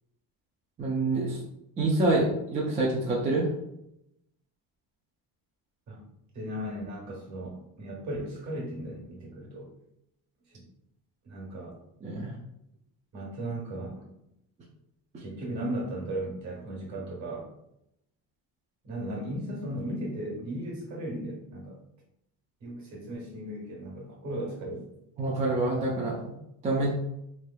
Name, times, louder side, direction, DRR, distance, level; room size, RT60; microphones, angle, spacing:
voice 1, 0.8-1.4 1.8-3.4 12.0-12.3 25.2-26.2 26.6-27.0, right 2 dB, 20° right, -5 dB, 0.4 m, -26 dB
voice 2, 6.3-9.7 10.5-10.7 11.2-11.8 13.1-14.0 15.2-17.5 18.8-21.8 22.6-24.9, right 1 dB, 50° right, -2 dB, 1.4 m, -36 dB
3.2 x 3.1 x 2.2 m, 0.81 s
cardioid pair, 160°, 38 cm